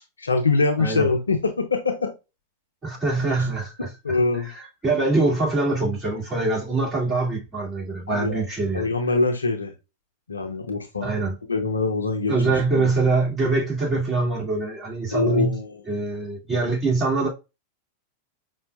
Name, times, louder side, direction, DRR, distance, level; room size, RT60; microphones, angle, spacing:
voice 1, 0.0-2.1 4.0-4.5 8.1-8.4 8.7-9.7 10.3-11.1 11.5-12.3 12.7-12.9 15.1-16.0, left 3 dB, 75° left, 0.8 m, -24 dB
voice 2, 0.8-1.1 2.8-8.9 11.0-11.3 12.3-15.5 15.9-17.3, right 3 dB, 20° right, 2.4 m, -24 dB
5.6 x 2.5 x 2.3 m
figure-of-eight pair, 90°, 0 cm